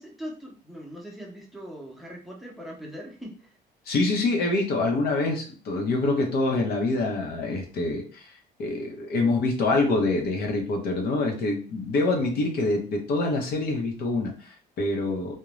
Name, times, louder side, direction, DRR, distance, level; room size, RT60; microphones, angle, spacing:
voice 1, 0.0-3.5, equal, ahead, -1 dB, 0.7 m, -40 dB
voice 2, 3.9-8.3 8.6-15.3, left 2 dB, 70° left, 1 dB, 0.8 m, -26 dB
2.4 x 2.2 x 3.0 m, 0.38 s
cardioid pair, 110°, 17 cm